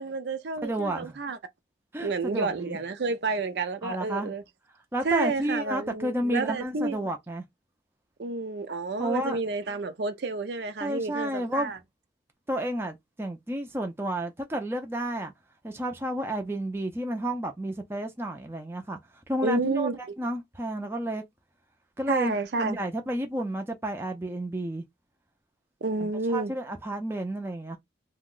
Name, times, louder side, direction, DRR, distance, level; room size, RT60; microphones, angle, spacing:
voice 1, 0.0-1.4 2.0-4.4 5.0-7.0 8.2-11.8 19.4-20.0 22.1-22.8 25.8-26.5, right 3 dB, 60° right, 0.5 m, -30 dB
voice 2, 0.6-1.2 1.9-2.8 3.8-4.3 4.9-7.4 9.0-9.4 10.8-11.7 12.5-15.3 15.6-19.0 19.3-21.2 22.0-24.8 26.0-27.8, right 1 dB, 15° right, 0.5 m, -31 dB
2.8 x 2.2 x 3.8 m
head